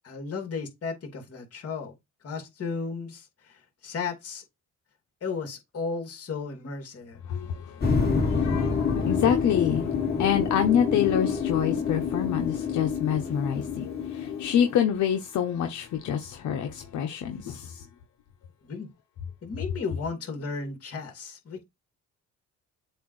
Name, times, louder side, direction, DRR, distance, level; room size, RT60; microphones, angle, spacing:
voice 1, 0.0-1.9 2.2-4.4 5.2-7.2 18.6-18.9 19.4-21.6, left 4 dB, 50° left, 2.6 m, -34 dB
voice 2, 7.3-7.8 8.1-17.8, left 9 dB, 75° left, 1.0 m, -27 dB
sound 1, 7.8-14.8, left 5 dB, 30° left, 2.4 m, -27 dB
7.9 x 2.6 x 4.8 m
cardioid pair, 90°, 30 cm